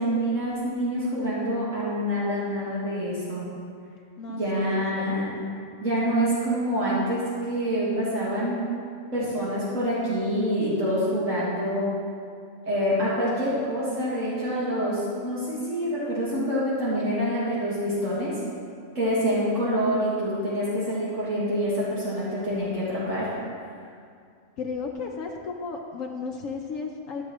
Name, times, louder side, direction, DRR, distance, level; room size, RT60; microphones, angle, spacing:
voice 1, 0.0-3.5 4.3-5.4 5.8-8.6 9.1-11.9 12.7-18.4 19.0-23.3, equal, 70° right, -9 dB, 2.1 m, -26 dB
voice 2, 4.2-5.3 24.6-27.3, left 4 dB, 75° left, 1 dB, 1.1 m, -34 dB
13.5 x 7.5 x 3.1 m, 2.3 s
omnidirectional pair, 1.4 m